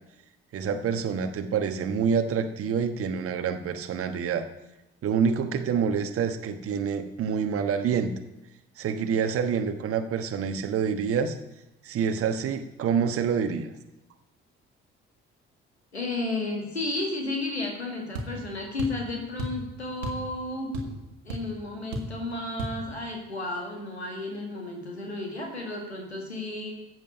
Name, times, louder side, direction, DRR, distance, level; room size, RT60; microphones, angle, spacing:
voice 1, 0.5-4.4 5.0-8.1 8.8-11.4 11.8-13.7, right 6 dB, 45° right, 6 dB, 1.2 m, -27 dB
voice 2, 15.9-21.0 21.2-26.7, left 2 dB, 85° left, 1 dB, 1.9 m, -33 dB
sound 1, 18.1-18.3 18.8-19.0 19.4-19.6 20.0-20.3 20.5-21.0 21.3-21.4 21.9-22.2 22.6-22.8, right 1 dB, 75° right, 1.7 m, -33 dB
14.0 x 7.7 x 5.4 m, 0.94 s
figure-of-eight pair, 45°, 32 cm